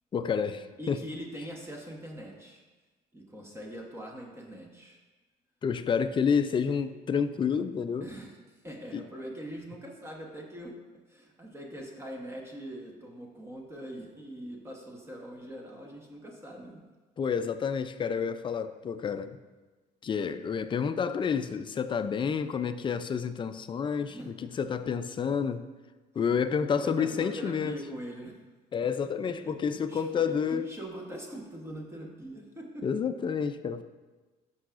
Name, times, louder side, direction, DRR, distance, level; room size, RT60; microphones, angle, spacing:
voice 1, 0.1-1.0 5.6-8.1 8.9-9.0 17.2-19.4 20.0-25.6 26.2-27.8 28.7-30.7 32.8-33.8, left 6 dB, 30° left, 10 dB, 0.4 m, -29 dB
voice 2, 0.8-2.6 3.1-5.0 8.0-10.7 11.1-16.8 24.1-24.3 26.7-28.4 29.0-29.1 29.4-30.0 30.4-32.8, equal, 15° right, 0 dB, 1.1 m, -42 dB
11.5 x 5.6 x 2.5 m, 1.3 s
cardioid pair, 110°, 17 cm